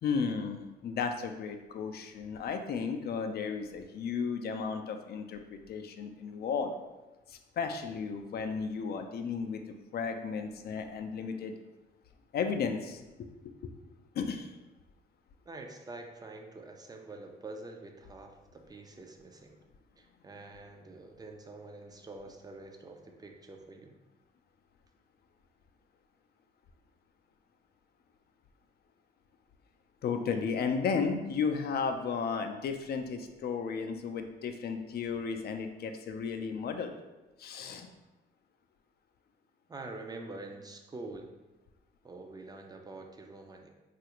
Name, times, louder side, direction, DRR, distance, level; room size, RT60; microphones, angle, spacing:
voice 1, 0.0-6.8 7.3-9.6 9.9-11.5 12.3-13.0 14.1-14.5 30.0-36.9 37.4-37.9, left 5 dB, 55° left, 6 dB, 0.4 m, -34 dB
voice 2, 15.5-19.5 20.0-23.9 39.7-41.3 42.0-43.7, right 2 dB, 20° right, 3 dB, 0.4 m, -46 dB
3.2 x 2.4 x 2.9 m, 1.1 s
cardioid pair, 90°, 20 cm